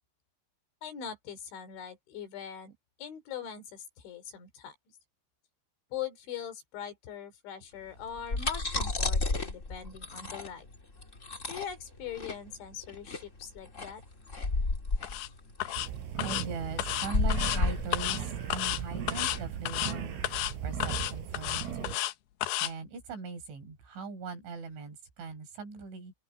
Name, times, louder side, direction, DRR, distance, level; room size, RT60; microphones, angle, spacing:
voice 1, 0.8-4.8 5.9-10.7 11.5-14.0, left 8 dB, 65° left, 5.7 m, -41 dB
sound 1, 8.0-19.4, left 3 dB, 35° left, 1.2 m, -32 dB
sound 2, 15.0-15.3 15.6-15.9 16.2-16.5 16.8-17.6 17.9-18.2 18.5-18.8 19.1-19.4 19.7-19.9 20.2-20.5 20.8-22.1 22.4-22.7, left 14 dB, 85° left, 2.2 m, -32 dB
sound 3, 15.8-22.0, right 9 dB, 85° right, 5.9 m, -38 dB
voice 2, 16.2-20.2 20.6-22.0 22.6-26.1, right 4 dB, 65° right, 7.4 m, -40 dB
open air
omnidirectional pair, 6.0 m